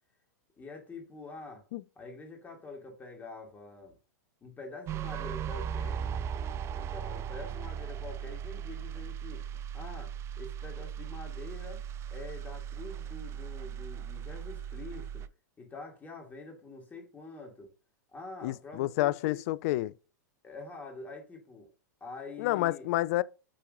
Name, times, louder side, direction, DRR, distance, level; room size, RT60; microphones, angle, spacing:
voice 1, 0.6-1.6 2.0-4.0 4.4-6.1 6.7-9.4 9.7-11.8 12.1-15.3 15.6-17.7 18.1-19.4 20.4-21.7 22.0-22.9, left 3 dB, 15° left, 2.7 m, -46 dB
sound 1, 4.9-15.3, right 8 dB, 25° right, 0.4 m, -38 dB
voice 2, 18.4-19.9 22.4-23.2, left 16 dB, 55° left, 0.4 m, -29 dB
8.6 x 4.5 x 2.6 m
hypercardioid pair, 110°, 10 cm